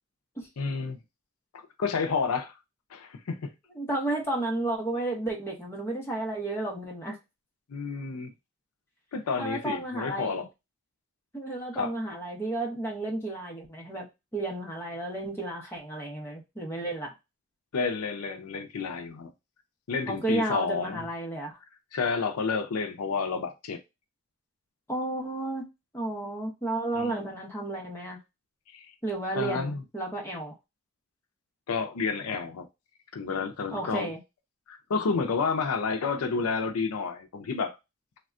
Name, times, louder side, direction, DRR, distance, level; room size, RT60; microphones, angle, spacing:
voice 1, 0.6-1.0 1.5-2.6 2.9-3.5 7.7-8.3 9.1-10.5 11.7-11.9 17.7-19.3 19.9-21.0 21.9-23.8 27.0-27.2 28.7-28.9 29.4-29.8 31.7-32.7 33.1-34.1 34.7-37.8, left 5 dB, 85° left, 0.5 m, -30 dB
voice 2, 3.7-7.2 9.4-10.4 11.3-14.1 14.3-17.1 20.1-21.5 24.9-25.7 25.9-28.2 29.0-30.5 33.7-34.2, right 2 dB, 10° left, 0.8 m, -32 dB
3.4 x 2.2 x 2.4 m
head